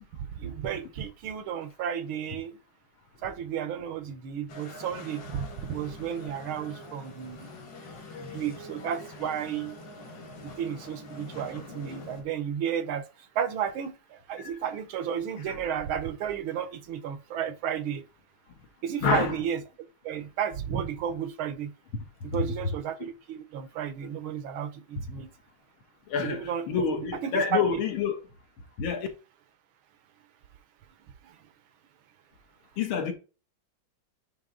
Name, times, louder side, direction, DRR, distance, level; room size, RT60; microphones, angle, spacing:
voice 1, 0.4-2.5 3.2-7.5 8.2-9.8 10.4-13.0 13.3-18.0 18.8-19.6 20.0-21.7 22.2-25.3 26.2-27.8 31.2-31.3, right 8 dB, 85° right, 1.7 m, -33 dB
sound 1, 4.5-12.2, left 2 dB, 65° left, 2.2 m, -44 dB
voice 2, 19.0-19.3 22.3-22.5 26.1-28.2 28.8-29.1 32.8-33.1, left 6 dB, 85° left, 2.1 m, -27 dB
9.1 x 3.1 x 3.8 m
omnidirectional pair, 2.2 m